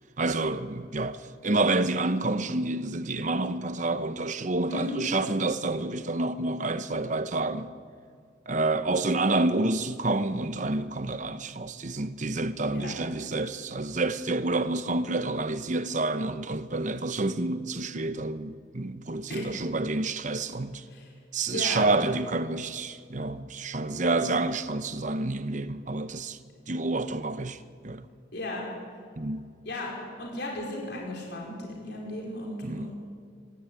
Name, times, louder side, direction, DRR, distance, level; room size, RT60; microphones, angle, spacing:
voice 1, 0.2-7.7 8.5-20.8 21.3-26.4 26.7-27.6 27.8-28.0 29.2-29.5 32.6-32.9, right 2 dB, 40° right, 0.9 m, -28 dB
voice 2, 4.7-5.1 12.7-13.0 19.3-19.4 20.9-21.1 21.5-21.9 28.3-28.7 29.6-32.9, left 1 dB, 60° left, 4.7 m, -35 dB
24.5 x 12.5 x 9.8 m
head